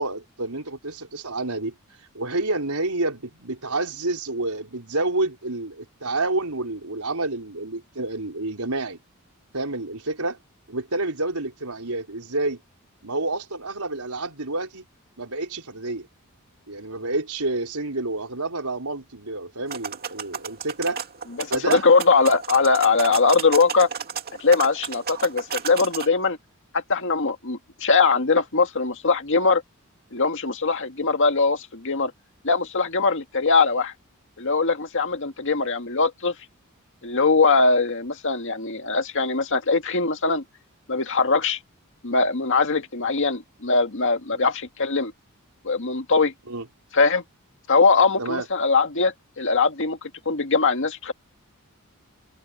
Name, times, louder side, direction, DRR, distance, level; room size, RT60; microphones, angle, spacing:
voice 1, 0.0-1.7 2.1-9.0 9.5-10.4 10.7-12.6 13.0-14.8 15.2-16.1 16.7-21.0 21.5-21.8 44.3-44.5 46.5-46.6 48.2-48.5, right 2 dB, 85° right, 4.7 m, -28 dB
sound 1, 19.7-26.1, right 7 dB, 45° right, 2.4 m, -33 dB
voice 2, 21.4-23.9 24.4-26.4 26.7-29.6 30.1-32.1 32.4-33.9 34.4-36.3 37.0-40.4 40.9-41.6 42.0-45.1 45.6-46.3 46.9-47.2 47.7-50.0 50.3-51.1, left 4 dB, 60° left, 2.0 m, -21 dB
head